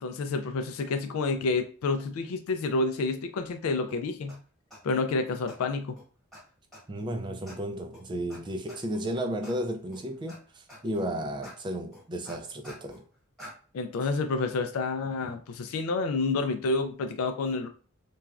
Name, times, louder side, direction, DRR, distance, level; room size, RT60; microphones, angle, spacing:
voice 1, 0.0-4.4 4.8-5.9 13.7-17.7, left 3 dB, 75° left, 0.3 m, -29 dB
sound 1, 3.9-4.0 4.3-4.4 4.7-5.0 5.5-5.6 6.0-6.1 6.3-6.4 6.7-7.0 7.5-7.6 7.9-8.0 8.3-8.4 8.7-9.0 9.4-9.6 9.9-10.4 10.7-11.0 11.4-11.6 11.9-13.0 13.4-13.5, equal, ahead, 1.1 m, -47 dB
voice 2, 6.9-13.0, right 1 dB, 20° right, 0.3 m, -33 dB
3.1 x 2.3 x 2.3 m
head